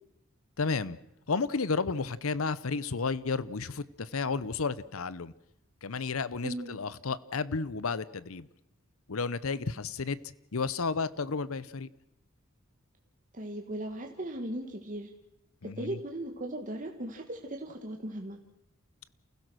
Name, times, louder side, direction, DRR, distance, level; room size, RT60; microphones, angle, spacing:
voice 1, 0.6-1.0 1.3-5.3 5.8-8.5 9.1-10.2 10.5-11.9 15.6-16.0, left 4 dB, 75° left, 18 dB, 0.8 m, -32 dB
voice 2, 6.4-6.8 13.3-15.1 15.6-18.4, right 1 dB, 35° right, 3 dB, 1.6 m, -37 dB
29.0 x 16.0 x 6.3 m, 0.82 s
head